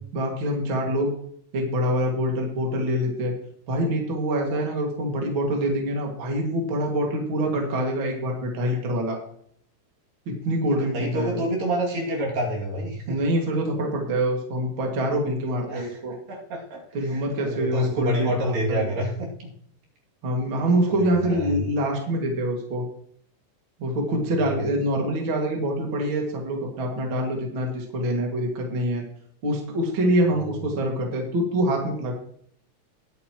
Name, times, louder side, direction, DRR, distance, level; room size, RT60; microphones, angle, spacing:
voice 1, 0.1-1.1 1.5-3.3 3.7-9.2 10.3-11.4 13.1-16.1 16.9-18.9 20.2-22.9 23.8-29.0 29.4-32.1, equal, 40° right, 0 dB, 2.3 m, -25 dB
voice 2, 10.8-13.2 15.7-16.0 16.3-16.8 17.1-19.5 21.3-21.5 24.3-24.6, equal, 60° right, -2 dB, 4.1 m, -28 dB
20.5 x 8.7 x 3.1 m, 0.64 s
omnidirectional pair, 4.8 m